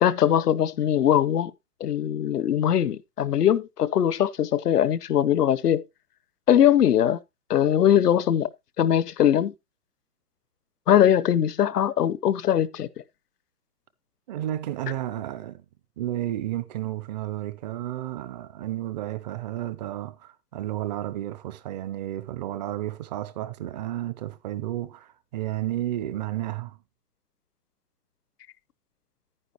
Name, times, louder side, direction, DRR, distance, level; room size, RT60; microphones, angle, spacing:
voice 1, 0.0-1.5 1.8-5.8 6.5-7.2 7.5-8.5 8.8-9.5 10.9-12.9, left 10 dB, 80° left, 0.9 m, -21 dB
voice 2, 14.3-15.6 16.0-26.8, right 13 dB, 30° right, 0.6 m, -32 dB
10.0 x 9.9 x 2.9 m
hypercardioid pair, 135°, 46 cm